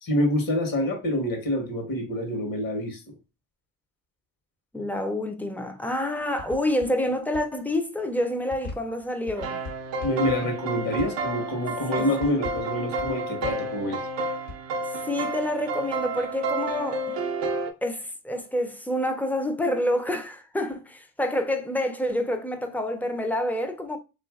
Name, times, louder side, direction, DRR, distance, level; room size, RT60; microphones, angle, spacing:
voice 1, 0.0-3.0 10.0-14.0, left 1 dB, 55° left, 1.0 m, -27 dB
voice 2, 4.7-9.6 12.0-12.1 15.0-17.2 17.8-24.0, left 1 dB, 5° left, 0.4 m, -28 dB
sound 1, 6.2-7.0 7.3-7.4 8.5-10.7 11.0-11.3 12.2-13.7 14.5-14.6, left 3 dB, 75° left, 1.2 m, -38 dB
sound 2, 9.3-17.7, right 2 dB, 85° right, 0.6 m, -31 dB
2.7 x 2.4 x 2.3 m
supercardioid pair, 60°, 41 cm